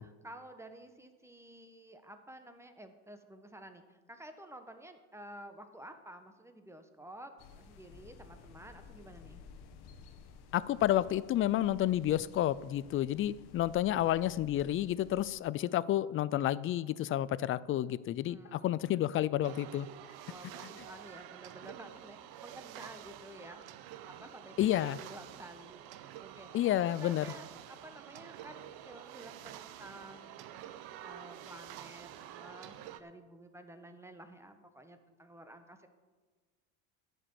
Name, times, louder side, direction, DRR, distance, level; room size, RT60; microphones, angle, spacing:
voice 1, 0.0-9.4 13.8-14.2 15.6-15.8 18.3-18.8 20.3-35.9, right 1 dB, 5° right, 7 dB, 1.2 m, -52 dB
sound 1, 7.4-15.4, left 5 dB, 60° left, 1.4 m, -54 dB
voice 2, 10.5-19.9 24.6-25.0 26.5-27.2, left 13 dB, 30° left, 19 dB, 0.4 m, -30 dB
sound 2, 19.4-33.0, right 12 dB, 60° right, 0.9 m, -49 dB
11.0 x 6.5 x 8.2 m, 1.4 s
supercardioid pair, 95°, 43 cm